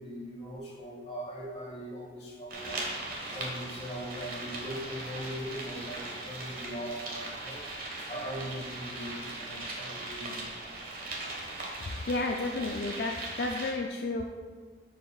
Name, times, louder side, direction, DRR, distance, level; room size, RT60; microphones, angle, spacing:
voice 1, 0.0-2.8 3.3-7.6 8.1-10.5, equal, 35° left, -4 dB, 1.8 m, -40 dB
sound 1, 2.5-13.7, right 2 dB, 50° right, 1.4 m, -39 dB
voice 2, 12.1-14.2, left 2 dB, 65° left, 2 dB, 0.4 m, -31 dB
11.0 x 5.1 x 2.4 m, 1.5 s
head